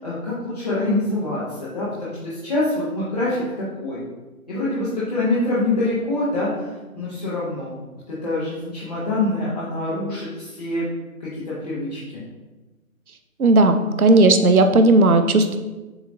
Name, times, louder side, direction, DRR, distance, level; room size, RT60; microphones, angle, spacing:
voice 1, 0.0-3.4 3.8-4.0 4.5-7.7 8.1-10.8 11.2-12.2, left 2 dB, 30° left, -10 dB, 0.9 m, -25 dB
voice 2, 13.4-15.6, right 2 dB, 80° right, 7 dB, 0.7 m, -15 dB
6.9 x 2.8 x 2.6 m, 1.1 s
figure-of-eight pair, 150°, 43 cm